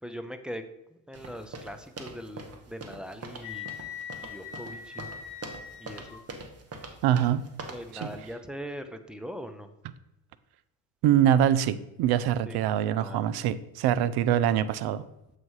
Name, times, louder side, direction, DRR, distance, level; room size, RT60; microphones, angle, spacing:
voice 1, 0.0-0.7 1.1-3.7 4.2-5.1 5.8-6.2 7.7-9.7 12.4-12.6 12.9-13.3, equal, ahead, 7 dB, 0.6 m, -41 dB
sound 1, 1.1-8.3, right 3 dB, 35° right, 1.2 m, -43 dB
Wind instrument woodwind instrument, 3.4-6.2, left 8 dB, 85° left, 1.1 m, -41 dB
voice 2, 7.0-7.4 7.9-8.1 11.0-15.1, right 10 dB, 60° right, 16 dB, 0.6 m, -24 dB
7.5 x 3.2 x 5.5 m, 0.89 s
supercardioid pair, 75°, 44 cm